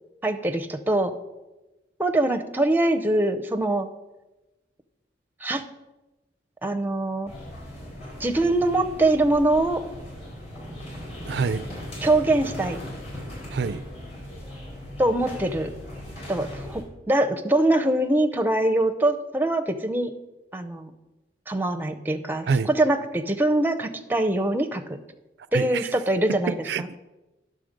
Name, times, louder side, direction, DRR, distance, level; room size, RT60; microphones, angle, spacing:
voice 1, 0.2-1.1 2.0-3.9 5.4-5.6 6.6-7.3 8.2-9.8 12.0-12.8 15.0-15.7 16.3-20.1 20.5-20.9 21.5-24.8 25.5-26.9, right 1 dB, 10° right, 0.6 m, -23 dB
sound 1, 7.3-16.8, equal, 35° left, 3.6 m, -38 dB
voice 2, 11.3-11.7 13.5-13.8 22.5-22.7 25.5-25.9 26.5-27.0, right 5 dB, 65° right, 0.3 m, -26 dB
10.0 x 6.6 x 5.1 m
head